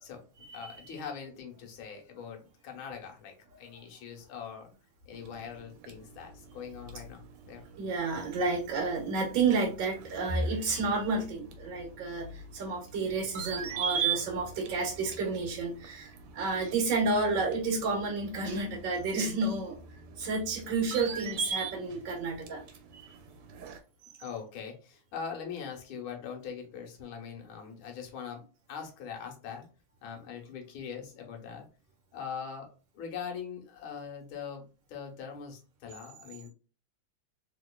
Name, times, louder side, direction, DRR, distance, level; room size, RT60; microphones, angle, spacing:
voice 1, 0.0-4.7 5.1-7.2 7.5-7.6 24.2-28.4 28.7-29.7 30.0-31.7 32.1-36.5, left 7 dB, 70° left, 2 dB, 1.7 m, -42 dB
sound 1, 5.1-23.8, right 5 dB, 85° right, 1.6 m, -40 dB
voice 2, 7.8-19.8 20.2-22.6 22.9-23.1, right 3 dB, 65° right, -1 dB, 1.6 m, -31 dB
3.7 x 2.8 x 2.2 m, 0.34 s
omnidirectional pair, 2.4 m